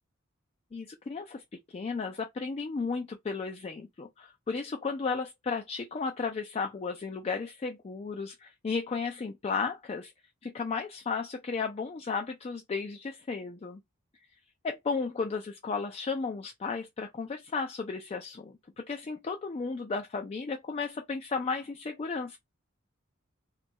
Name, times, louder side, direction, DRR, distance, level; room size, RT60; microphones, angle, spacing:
voice 1, 0.7-1.4 1.7-10.1 10.4-13.8 14.6-22.4, left 4 dB, 30° left, 0.3 m, -34 dB
2.6 x 2.2 x 4.0 m
head